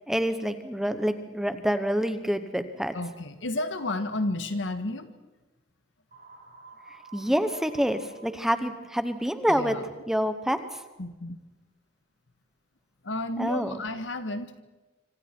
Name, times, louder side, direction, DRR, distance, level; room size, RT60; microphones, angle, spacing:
voice 1, 0.1-2.9 7.1-9.8 10.1-10.8 13.4-13.7, equal, ahead, 10 dB, 1.0 m, -27 dB
voice 2, 2.9-5.1 9.5-9.9 11.0-11.4 13.0-14.6, left 2 dB, 85° left, 9 dB, 1.7 m, -32 dB
sound 1, 6.1-10.0, right 3 dB, 50° right, 6.5 m, -51 dB
25.5 x 25.5 x 4.6 m, 1.2 s
head